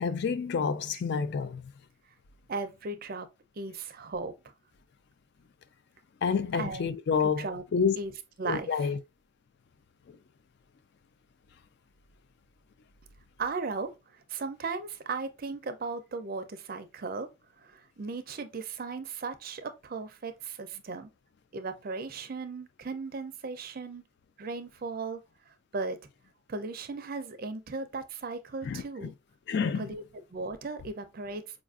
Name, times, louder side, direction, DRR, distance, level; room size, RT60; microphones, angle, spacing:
voice 1, 0.0-1.7 6.2-7.5 7.7-8.0 8.4-9.0 28.6-29.1 29.5-29.8, left 6 dB, 50° left, 0.3 m, -28 dB
voice 2, 2.5-3.3 3.6-4.3 6.5-6.9 7.2-7.6 8.0-8.1 8.4-8.9 13.4-17.3 17.6-21.1 21.5-24.0 24.4-25.2 25.7-26.0 26.5-29.1 29.7-30.0 30.3-31.4, right 4 dB, 45° right, 0.4 m, -36 dB
4.7 x 2.4 x 2.3 m
head